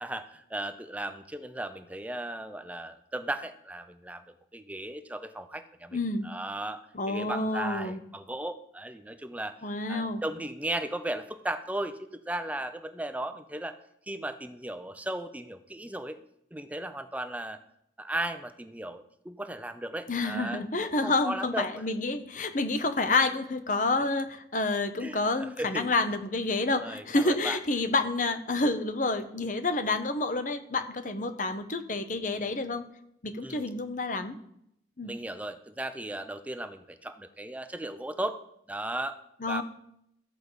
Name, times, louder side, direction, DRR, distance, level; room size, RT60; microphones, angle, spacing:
voice 1, 0.0-4.2 4.5-6.0 6.2-6.8 7.1-9.6 9.9-13.8 14.1-16.2 16.5-17.6 18.0-21.7 25.0-25.9 26.7-27.6 33.4-33.6 35.0-38.4 38.7-39.2 39.5-39.6, right 1 dB, 10° right, 10 dB, 0.6 m, -36 dB
voice 2, 5.9-6.3 6.9-8.0 9.6-10.2 20.1-32.8 33.2-34.4 35.0-35.1 39.4-39.6, left 2 dB, 45° left, 10 dB, 0.9 m, -29 dB
13.5 x 5.4 x 8.0 m, 0.75 s
head